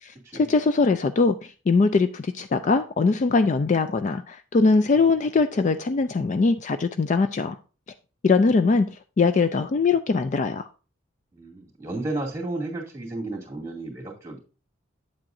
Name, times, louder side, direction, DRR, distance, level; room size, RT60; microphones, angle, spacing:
voice 1, 0.0-7.6 8.2-8.9 9.2-10.7, left 4 dB, 35° left, 0.3 m, -21 dB
voice 2, 11.3-14.4, right 2 dB, 15° right, 2.3 m, -33 dB
8.5 x 7.5 x 2.6 m
head